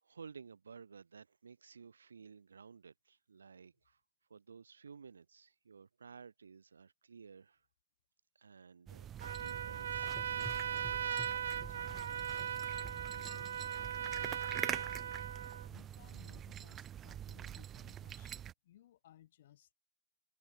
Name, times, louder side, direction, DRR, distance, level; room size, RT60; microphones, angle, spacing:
voice 1, 0.0-4.0 4.3-7.7 8.4-11.3, right 5 dB, 85° right, 3.7 m, -55 dB
sound 1, 8.9-18.5, right 10 dB, 20° right, 1.5 m, -45 dB
Trumpet, 9.2-15.7, right 9 dB, 70° right, 0.5 m, -39 dB
Gurgling / Engine, 9.9-16.6, equal, ahead, 5.2 m, -55 dB
voice 2, 11.0-15.2 15.7-19.7, left 12 dB, 55° left, 6.2 m, -62 dB
hypercardioid pair, 130°, 0 cm